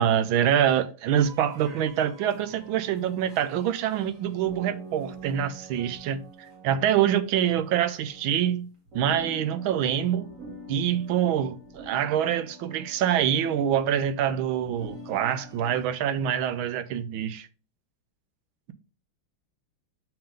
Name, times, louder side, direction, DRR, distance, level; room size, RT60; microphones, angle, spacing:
voice 1, 0.0-6.2 6.6-8.7 8.9-10.3 10.7-17.5, right 9 dB, 80° right, 1.5 m, -25 dB
sound 1, 1.2-8.3 8.9-15.9, right 1 dB, 45° right, 1.6 m, -45 dB
5.8 x 3.7 x 5.0 m
omnidirectional pair, 2.2 m